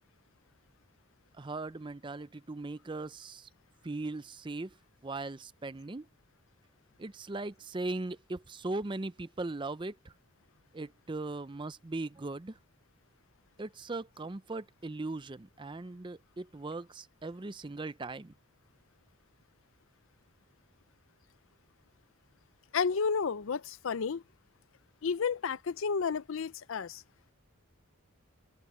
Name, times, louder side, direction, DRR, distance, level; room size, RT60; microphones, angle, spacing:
voice 1, 1.4-3.5 3.8-4.8 5.0-6.1 7.0-10.1 10.7-12.6 13.6-18.3, right 2 dB, 20° right, 0.5 m, -39 dB
voice 2, 22.7-24.2 25.0-27.0, left 5 dB, 65° left, 0.5 m, -31 dB
open air
head